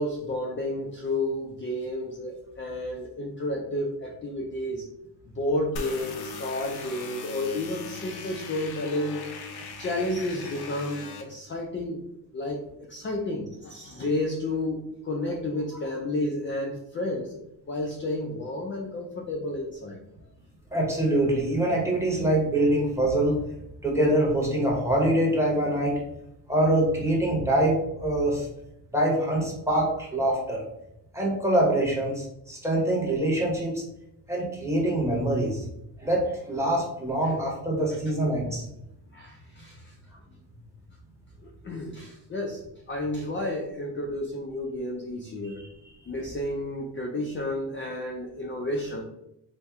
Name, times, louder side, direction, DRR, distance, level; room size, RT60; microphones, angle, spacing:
voice 1, 0.0-4.9 5.3-9.3 9.8-12.1 12.3-17.4 17.7-20.0 37.2-37.3 39.1-39.9 41.4-45.7 46.1-49.0, left 1 dB, 30° left, 0 dB, 0.4 m, -31 dB
sound 1, 5.8-11.2, left 4 dB, 70° left, 0.6 m, -39 dB
voice 2, 20.7-23.4 23.8-26.0 26.5-28.5 28.9-30.6 31.1-33.8 34.3-35.6 36.0-38.6 45.4-45.5, right 1 dB, 5° right, -3 dB, 0.9 m, -24 dB
4.3 x 2.1 x 3.5 m, 0.83 s
wide cardioid pair, 175°, 40 cm